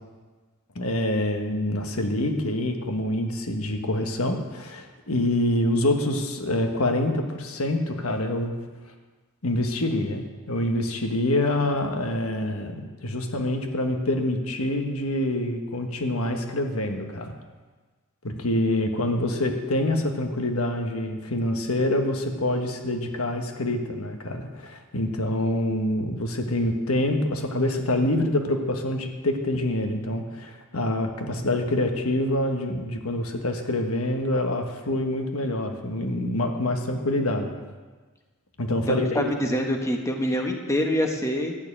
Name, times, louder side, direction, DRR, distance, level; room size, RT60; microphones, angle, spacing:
voice 1, 0.7-8.5 9.4-17.3 18.2-37.5 38.6-39.3, left 1 dB, 80° left, 4 dB, 1.4 m, -26 dB
voice 2, 38.9-41.6, equal, 15° left, 3 dB, 1.0 m, -25 dB
11.5 x 6.8 x 8.6 m, 1.4 s
head